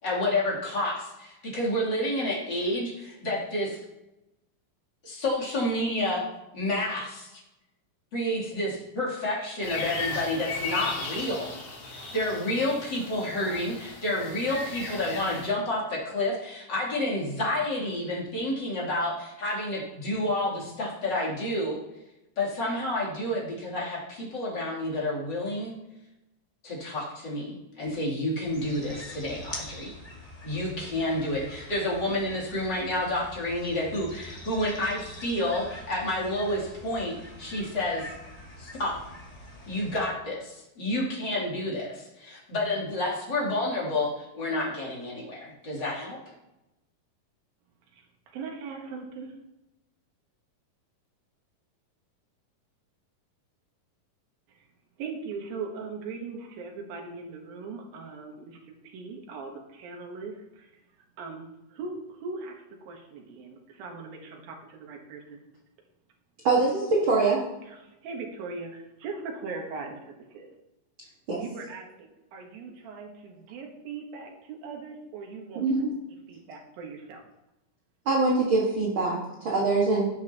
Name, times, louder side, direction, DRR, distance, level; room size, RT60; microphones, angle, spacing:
voice 1, 0.0-3.8 5.0-6.2 6.5-7.4 8.1-11.6 11.9-21.8 22.4-25.7 26.6-29.9 30.4-38.1 38.6-39.0 39.7-46.2, left 1 dB, 30° left, -5 dB, 3.2 m, -29 dB
sound 1, 9.6-15.5, left 3 dB, 50° left, 2.8 m, -36 dB
sound 2, 28.4-40.0, left 1 dB, 15° left, 1.8 m, -44 dB
voice 2, 48.3-49.3 55.0-60.8 61.2-65.4 67.6-70.5 71.4-75.8 76.3-77.2, right 4 dB, 90° right, 1 dB, 3.1 m, -40 dB
voice 3, 66.4-67.4 71.3-71.4 75.6-75.9 78.1-80.1, right 3 dB, 45° right, -5 dB, 1.9 m, -24 dB
18.0 x 7.0 x 2.9 m, 0.93 s
omnidirectional pair, 4.0 m